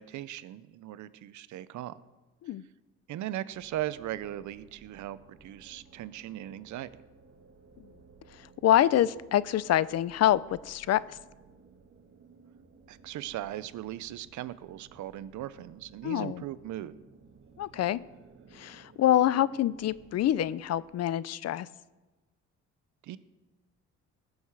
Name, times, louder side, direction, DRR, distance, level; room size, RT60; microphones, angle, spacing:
voice 1, 0.0-2.0 3.1-6.9 12.9-17.0 23.0-23.2, right 13 dB, 75° right, 16 dB, 0.6 m, -38 dB
sound 1, 3.5-21.0, right 4 dB, 45° right, 1.4 m, -57 dB
voice 2, 8.6-11.2 16.0-16.4 17.6-18.0 18.5-21.7, left 12 dB, 60° left, 19 dB, 0.5 m, -26 dB
18.5 x 6.4 x 4.7 m, 1.2 s
cardioid pair, 90°, 30 cm